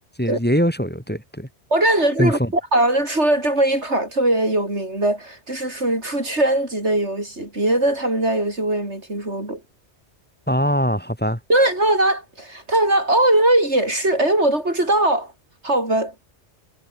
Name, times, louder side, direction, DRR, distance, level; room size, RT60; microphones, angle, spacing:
voice 1, 0.2-1.5 2.2-2.5 10.5-11.4, equal, 10° left, 4.2 m, -21 dB
voice 2, 1.7-9.6 11.5-15.3 15.6-16.1, right 1 dB, 85° right, 7.6 m, -20 dB
omnidirectional pair, 1.1 m